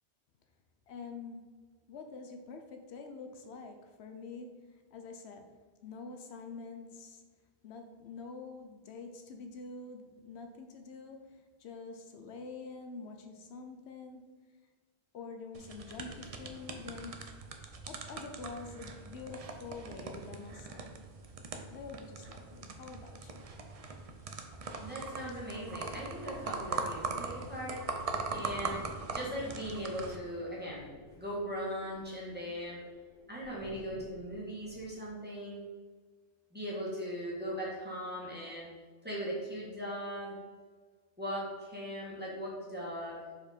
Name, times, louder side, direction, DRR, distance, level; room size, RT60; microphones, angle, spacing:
voice 1, 0.9-5.5 5.8-14.4 15.1-17.2 17.9-20.9 21.7-23.4, left 4 dB, 80° left, 5 dB, 0.9 m, -46 dB
sound 1, 15.5-30.2, right 4 dB, 45° right, 0.5 m, -41 dB
voice 2, 24.8-30.9 31.2-32.8 33.3-35.6 36.5-38.7 39.0-40.4 41.2-43.2, equal, 10° right, -6 dB, 1.7 m, -39 dB
sound 2, 28.2-35.0, right 1 dB, 70° right, 1.9 m, -54 dB
5.1 x 4.4 x 4.2 m, 1.4 s
omnidirectional pair, 1.1 m